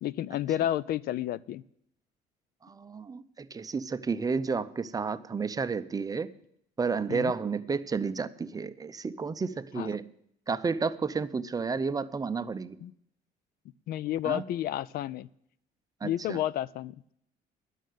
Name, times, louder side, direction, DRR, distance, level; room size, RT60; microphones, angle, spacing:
voice 1, 0.0-1.6 7.1-7.3 9.8-9.9 12.8-12.9 13.9-15.3 16.0-17.0, left 12 dB, 65° left, 20 dB, 0.4 m, -31 dB
voice 2, 2.6-6.3 6.8-10.1 10.5-12.8 14.2-14.4 16.0-16.4, right 5 dB, 20° right, 13 dB, 0.5 m, -31 dB
11.0 x 6.5 x 9.1 m, 0.72 s
cardioid pair, 110°, 17 cm